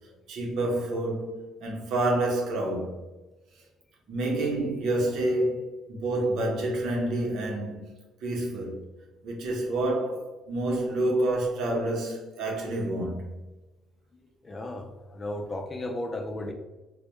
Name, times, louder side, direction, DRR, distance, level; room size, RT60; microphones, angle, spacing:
voice 1, 0.3-3.0 4.1-7.9 8.2-8.8 9.2-13.2, right 1 dB, 70° right, 0.7 m, -28 dB
voice 2, 14.4-16.5, left 1 dB, 30° left, 0.4 m, -35 dB
2.1 x 2.1 x 2.9 m
cardioid pair, 85°, 0 cm